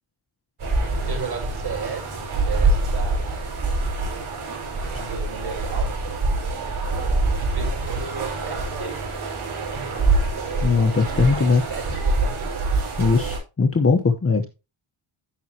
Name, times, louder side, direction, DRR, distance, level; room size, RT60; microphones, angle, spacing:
sound 1, 0.6-13.4, right 3 dB, 75° right, 6.1 m, -25 dB
voice 1, 0.9-3.4 4.9-6.0 7.4-9.0 11.0-12.4, right 5 dB, 50° right, 1 dB, 5.5 m, -34 dB
voice 2, 10.6-11.6 13.0-14.4, left 4 dB, 25° left, 5 dB, 1.1 m, -19 dB
16.0 x 5.5 x 3.0 m, 0.28 s
wide cardioid pair, 110°, 50 cm